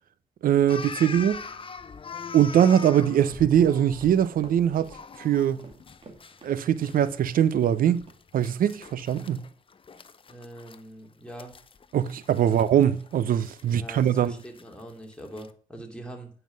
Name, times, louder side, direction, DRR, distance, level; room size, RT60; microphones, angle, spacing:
voice 1, 0.4-1.4 2.3-5.6 6.4-8.0 8.3-9.5 11.9-14.3, right 9 dB, 80° right, 0.6 m, -22 dB
sound 1, 0.7-10.8 11.3-15.5, left 5 dB, 40° left, 0.7 m, -43 dB
sound 2, 3.1-7.4 7.6-7.8 8.1-8.2, right 3 dB, 40° right, 2.4 m, -49 dB
voice 2, 10.3-11.5 12.5-12.6 13.6-16.3, right 1 dB, 5° left, 2.7 m, -43 dB
9.4 x 5.7 x 5.2 m
cardioid pair, 80°, 14 cm